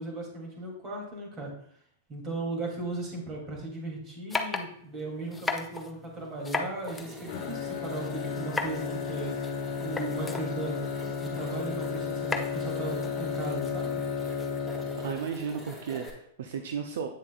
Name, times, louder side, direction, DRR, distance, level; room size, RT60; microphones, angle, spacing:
voice 1, 0.0-1.5 2.1-9.5 9.8-10.8 11.2-14.0, right 2 dB, 35° right, -1 dB, 2.9 m, -37 dB
sound 1, 4.3-15.2, left 3 dB, 10° left, 0.7 m, -38 dB
sound 2, 6.9-16.1, left 1 dB, 10° right, 2.8 m, -45 dB
Bowed string instrument, 7.3-15.6, left 6 dB, 55° left, 1.0 m, -33 dB
voice 2, 15.0-17.1, right 7 dB, 70° right, 5 dB, 0.6 m, -34 dB
8.6 x 7.1 x 2.5 m, 0.65 s
hypercardioid pair, 110°, 0 cm